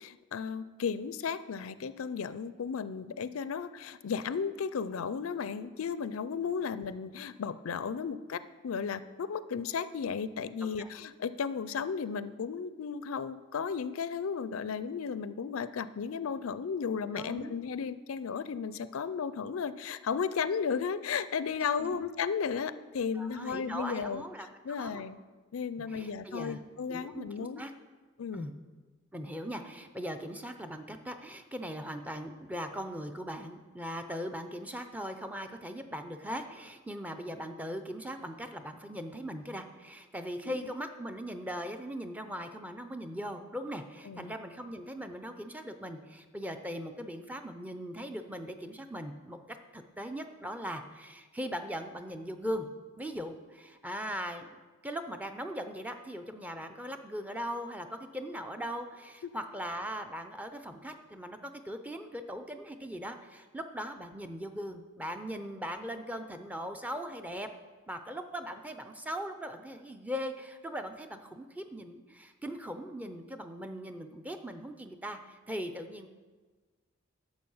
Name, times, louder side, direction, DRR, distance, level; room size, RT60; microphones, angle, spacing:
voice 1, 0.0-24.2 24.6-25.2 25.5-27.6 28.2-28.5 40.4-40.7 44.1-44.3 59.2-59.3, left 6 dB, 90° left, 14 dB, 0.4 m, -34 dB
voice 2, 17.1-17.6 21.8-22.0 23.1-25.0 25.9-26.6 26.9-27.7 28.3-28.5 29.1-52.7 53.0-54.5 54.8-67.5 67.9-76.1, equal, 5° right, 7 dB, 0.5 m, -39 dB
11.0 x 7.0 x 5.6 m, 1.4 s
head